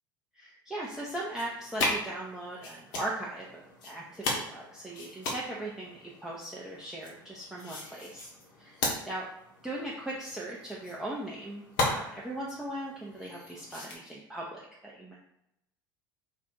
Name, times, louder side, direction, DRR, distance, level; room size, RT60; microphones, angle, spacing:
voice 1, 0.3-8.3 8.6-9.3 9.6-15.2, right 1 dB, 5° right, -5 dB, 0.5 m, -39 dB
sound 1, 0.8-13.9, left 2 dB, 65° left, 0.9 m, -37 dB
2.5 x 2.2 x 3.6 m, 0.84 s
hypercardioid pair, 75°, 12 cm